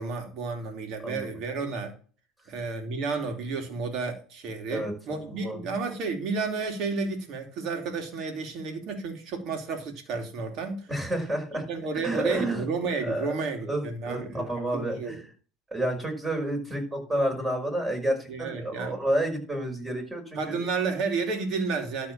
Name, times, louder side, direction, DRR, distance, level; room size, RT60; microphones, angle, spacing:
voice 1, 0.0-1.9 2.5-10.9 11.5-15.2 18.3-19.0 20.4-22.1, right 4 dB, 55° right, 2.9 m, -32 dB
voice 2, 4.7-5.6 10.9-11.6 11.9-12.6 13.0-13.3 13.6-15.2 15.7-20.6, right 1 dB, 15° right, 5.5 m, -30 dB
12.5 x 4.3 x 7.4 m
hypercardioid pair, 75°, 0 cm